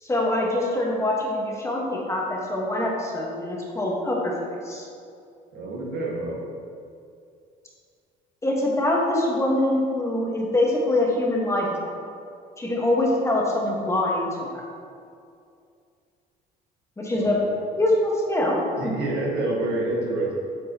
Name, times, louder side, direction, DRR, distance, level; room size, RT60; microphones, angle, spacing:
voice 1, 0.0-4.9 8.4-11.9 12.6-14.5 17.0-17.4 17.7-18.9, left 1 dB, 15° left, -3 dB, 1.3 m, -24 dB
voice 2, 5.5-6.4 17.1-17.5 18.7-20.4, right 2 dB, 75° right, -2 dB, 1.6 m, -28 dB
8.8 x 5.3 x 2.9 m, 2.4 s
cardioid pair, 110°, 17 cm